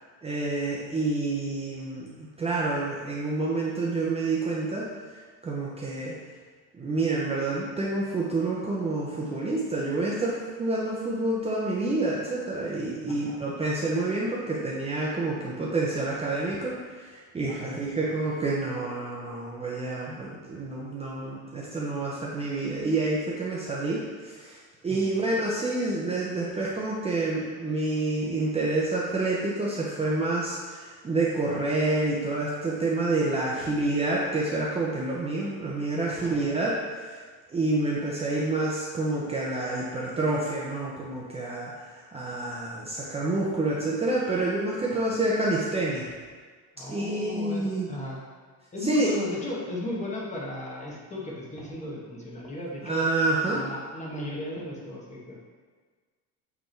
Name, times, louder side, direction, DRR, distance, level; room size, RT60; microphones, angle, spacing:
voice 1, 0.2-2.1 2.4-4.9 5.4-6.1 6.8-24.6 24.8-36.8 37.1-37.2 37.5-46.0 46.9-47.9 48.8-49.1 52.8-53.6, right 2 dB, 15° right, -5 dB, 0.7 m, -28 dB
voice 2, 13.1-13.4 17.5-17.7 24.9-25.1 36.2-36.5 44.9-45.1 46.8-48.2 48.7-53.1 53.5-55.4, left 1 dB, 20° left, -4 dB, 1.3 m, -36 dB
8.2 x 3.5 x 4.4 m, 1.6 s
cardioid pair, 150°, 36 cm